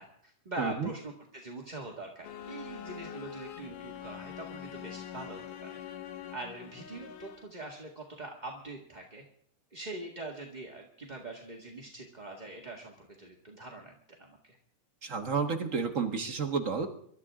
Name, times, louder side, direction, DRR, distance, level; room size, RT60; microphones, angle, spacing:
voice 1, 0.0-5.8 6.3-9.2 9.7-14.6, right 2 dB, 20° right, -1 dB, 1.3 m, -43 dB
voice 2, 0.6-0.9 15.0-16.9, right 5 dB, 75° right, 4 dB, 0.7 m, -31 dB
sound 1, 2.2-7.6, left 9 dB, 85° left, 2.8 m, -44 dB
24.5 x 13.0 x 3.7 m, 0.65 s
omnidirectional pair, 3.6 m